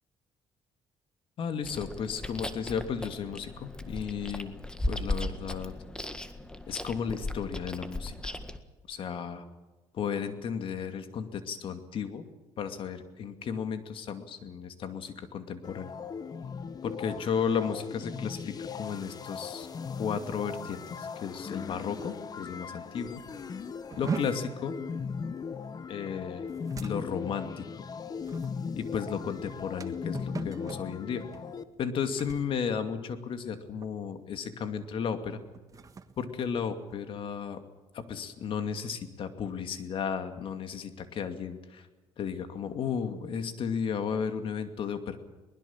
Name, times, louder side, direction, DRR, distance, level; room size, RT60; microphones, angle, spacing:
voice 1, 1.4-4.5 4.9-5.7 6.7-8.3 8.9-9.4 9.9-12.2 12.6-15.9 16.8-19.7 20.0-23.2 24.0-24.7 25.9-26.5 26.8-27.6 28.8-31.2 31.8-35.4 36.2-37.6 37.9-41.9 42.2-45.2, left 7 dB, 55° left, 8 dB, 2.5 m, -34 dB
Chewing mastication, 1.6-8.6, left 1 dB, 10° left, 1.7 m, -37 dB
sound 1, 15.6-31.6, left 6 dB, 40° left, 1.2 m, -39 dB
sound 2, 23.9-33.5 33.8-34.2 34.6-34.8 35.4-37.3, right 5 dB, 35° right, 1.7 m, -42 dB
22.0 x 20.5 x 7.3 m, 1.2 s
cardioid pair, 105°, 10 cm